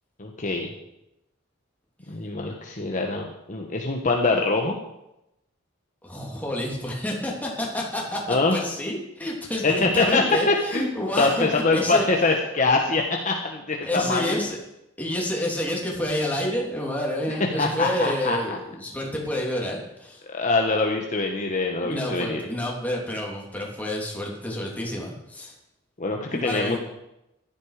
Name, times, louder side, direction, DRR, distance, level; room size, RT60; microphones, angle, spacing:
voice 1, 0.2-0.7 2.1-4.8 8.3-8.6 9.6-10.9 11.2-14.4 17.5-18.6 20.3-22.4 26.0-26.8, left 3 dB, 40° left, 1 dB, 1.4 m, -24 dB
voice 2, 6.0-12.1 13.8-14.6 15.0-20.2 21.8-25.5 26.3-26.8, left 1 dB, 10° left, -2 dB, 3.2 m, -29 dB
15.0 x 12.0 x 5.0 m, 0.88 s
head